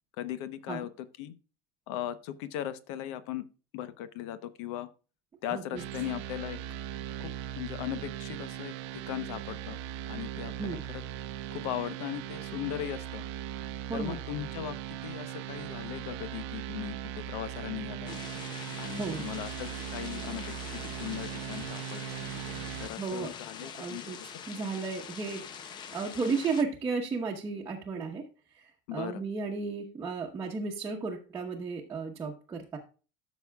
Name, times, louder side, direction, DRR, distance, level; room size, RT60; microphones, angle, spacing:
voice 1, 0.2-0.9 1.2-1.3 1.9-3.4 3.7-4.9 5.4-6.6 7.2-7.3 7.6-9.8 10.1-11.0 11.5-13.2 13.9-14.8 15.0-17.0 17.3-18.1 18.8-22.1 22.8-24.1 28.9-29.2, left 12 dB, 75° left, 13 dB, 0.9 m, -38 dB
voice 2, 5.5-5.8 10.6-10.8 13.9-14.2 19.0-19.2 23.0-23.3 23.6-24.2 24.5-28.2 28.9-32.8, right 4 dB, 20° right, -3 dB, 1.0 m, -34 dB
sound 1, 5.7-22.9, right 11 dB, 80° right, 0.7 m, -39 dB
sound 2, 18.1-26.6, left 7 dB, 30° left, 0.7 m, -44 dB
13.0 x 6.3 x 2.3 m, 0.35 s
cardioid pair, 160°, 15 cm